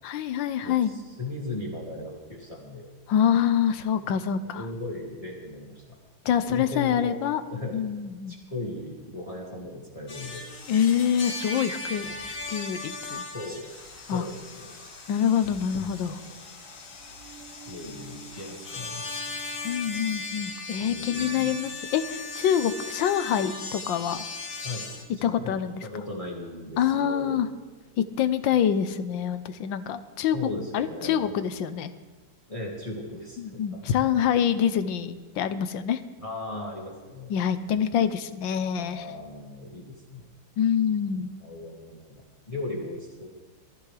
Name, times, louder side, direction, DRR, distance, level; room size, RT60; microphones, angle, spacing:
voice 1, 0.0-0.9 3.1-4.7 6.2-7.4 7.7-8.4 10.7-13.2 14.1-14.2 15.1-16.2 19.6-24.2 25.2-25.8 26.8-27.5 28.0-30.4 30.7-31.9 33.4-36.0 37.3-39.0 40.6-41.3, left 8 dB, 80° left, 11 dB, 1.5 m, -26 dB
voice 2, 0.6-2.9 3.9-4.1 4.4-6.0 6.5-7.2 7.5-7.8 8.3-10.5 12.1-12.2 13.3-13.6 14.1-14.8 16.1-16.3 17.5-19.4 20.8-21.6 24.6-24.9 25.1-25.6 25.8-27.4 30.3-31.3 32.5-33.8 34.6-34.7 36.2-37.3 37.7-37.8 38.7-40.3 41.2-43.3, left 2 dB, 15° left, -3 dB, 2.4 m, -37 dB
sound 1, 10.1-25.0, left 3 dB, 45° left, 2.0 m, -38 dB
22.5 x 14.0 x 3.3 m, 1.3 s
omnidirectional pair, 2.1 m